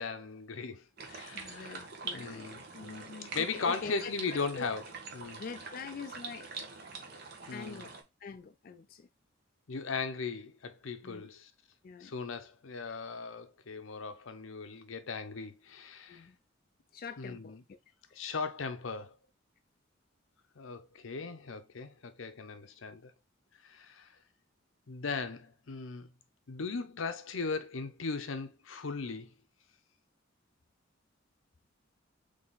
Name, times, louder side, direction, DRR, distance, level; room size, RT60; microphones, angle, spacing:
voice 1, 0.0-1.8 2.1-4.8 5.1-5.4 7.5-7.8 9.7-11.5 12.0-16.3 17.2-17.6 18.1-19.2 20.6-23.1 23.6-24.1 24.9-26.1 26.5-29.3, left 4 dB, 85° left, 0.7 m, -38 dB
sound 1, 1.0-8.0, right 4 dB, 55° right, 1.0 m, -45 dB
voice 2, 1.3-4.7 5.4-6.5 7.5-9.1 11.0-11.3 11.8-12.1 16.1-16.4 16.9-17.8, left 5 dB, 45° left, 0.4 m, -45 dB
3.8 x 3.4 x 3.9 m
head